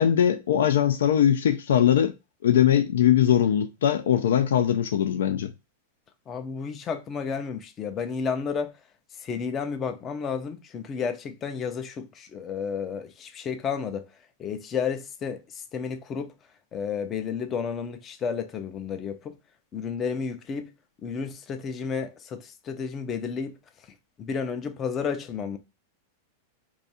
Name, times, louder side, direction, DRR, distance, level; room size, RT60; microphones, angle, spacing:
voice 1, 0.0-2.1 2.4-5.5, left 10 dB, 90° left, 0.4 m, -21 dB
voice 2, 6.3-8.7 9.2-14.1 14.4-16.3 16.7-19.4 19.7-20.7 21.0-23.6 24.2-25.6, left 6 dB, 25° left, 0.4 m, -32 dB
2.6 x 2.3 x 4.1 m
supercardioid pair, 150°, 0 cm